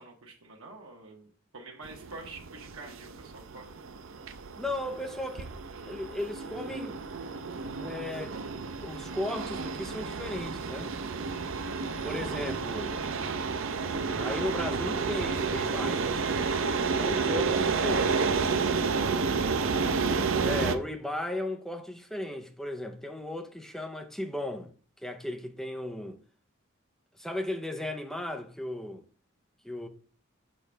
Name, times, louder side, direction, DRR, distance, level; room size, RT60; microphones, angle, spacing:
voice 1, 0.0-3.7, right 3 dB, 90° right, 1.1 m, -47 dB
sound 1, 1.8-20.8, right 4 dB, 70° right, 0.6 m, -31 dB
voice 2, 4.6-5.5 5.8-7.0 7.8-8.4 8.8-10.9 12.0-12.9 14.2-16.0 16.9-18.7 20.4-24.7 25.0-26.2 27.2-29.0 29.6-29.9, left 1 dB, ahead, 0.7 m, -36 dB
6.6 x 5.0 x 3.3 m
head